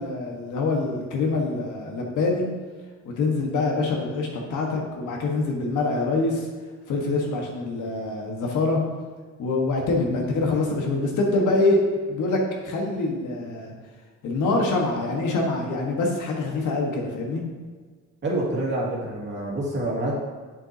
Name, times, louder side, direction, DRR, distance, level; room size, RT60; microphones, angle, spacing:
voice 1, 0.0-2.5 3.2-6.5 6.9-8.8 9.4-11.8 12.1-12.4 12.6-13.7 14.2-17.4, left 3 dB, 85° left, 0 dB, 1.5 m, -25 dB
voice 2, 18.2-20.1, right 1 dB, 40° right, -4 dB, 2.1 m, -27 dB
7.7 x 7.3 x 2.8 m, 1.5 s
cardioid pair, 145°, 30 cm